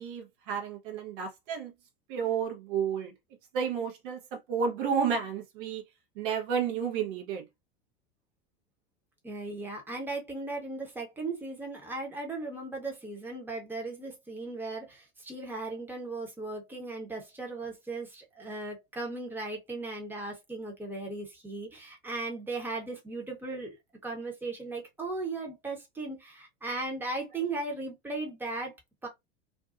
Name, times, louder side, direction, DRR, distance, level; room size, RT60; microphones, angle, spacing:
voice 1, 0.0-1.7 2.1-3.1 3.5-5.8 6.2-7.4, right 7 dB, 55° right, 0.8 m, -31 dB
voice 2, 9.2-23.8 24.0-28.7 29.0-29.1, right 3 dB, 5° right, 0.9 m, -37 dB
2.5 x 2.2 x 2.4 m
hypercardioid pair, 90°, 30 cm